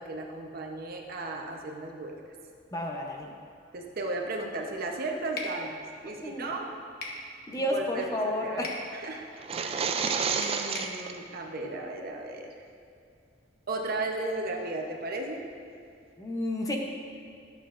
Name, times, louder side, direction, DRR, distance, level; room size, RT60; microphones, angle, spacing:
voice 1, 0.0-2.2 3.7-6.7 7.7-8.6 8.9-9.3 9.5-9.9 10.3-12.5 13.7-15.4, right 2 dB, 55° right, 1 dB, 0.8 m, -35 dB
voice 2, 2.7-3.3 6.2-6.5 7.5-8.8 16.2-16.8, left 1 dB, 20° left, 0 dB, 0.7 m, -31 dB
sound 1, 5.4-5.6 7.0-7.2 8.6-8.9 10.1-11.0, left 3 dB, 55° left, 1.0 m, -37 dB
sound 2, 9.4-11.2, right 6 dB, 35° right, 0.3 m, -30 dB
11.5 x 7.3 x 2.5 m, 2.5 s
head